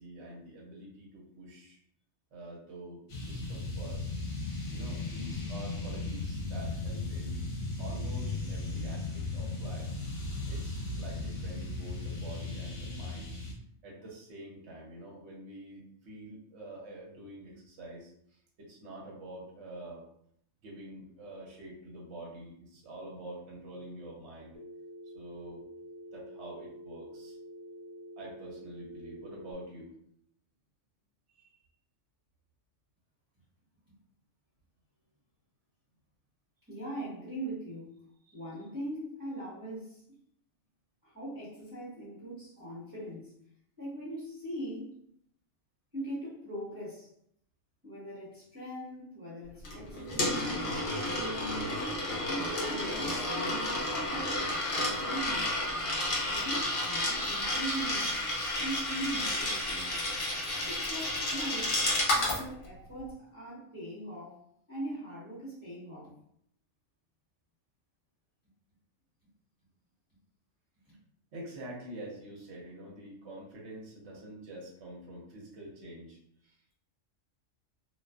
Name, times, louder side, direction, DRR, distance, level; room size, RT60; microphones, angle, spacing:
voice 1, 0.0-1.8 2.3-4.0 4.7-7.4 7.8-9.9 10.5-13.3 13.8-20.0 20.6-24.6 25.1-25.6 26.1-27.4 28.2-30.0 31.3-31.6 38.3-38.4 62.7-62.8 71.3-76.6, right 1 dB, 65° right, -3 dB, 0.9 m, -46 dB
sound 1, 3.1-13.5, left 2 dB, 70° left, 1.0 m, -36 dB
Telephone, 24.5-29.5, equal, 25° left, 0.4 m, -47 dB
voice 2, 36.7-40.0 41.0-43.3 43.8-44.9 45.9-47.1 47.8-51.7 52.1-53.7 54.0-54.3 54.8-55.6 56.3-58.1 58.6-59.9 60.6-61.8 62.1-66.1, right 1 dB, 20° right, -12 dB, 1.0 m, -41 dB
Coin (dropping), 49.6-62.4, left 1 dB, 50° left, 0.7 m, -31 dB
2.4 x 2.4 x 2.2 m, 0.68 s
omnidirectional pair, 1.3 m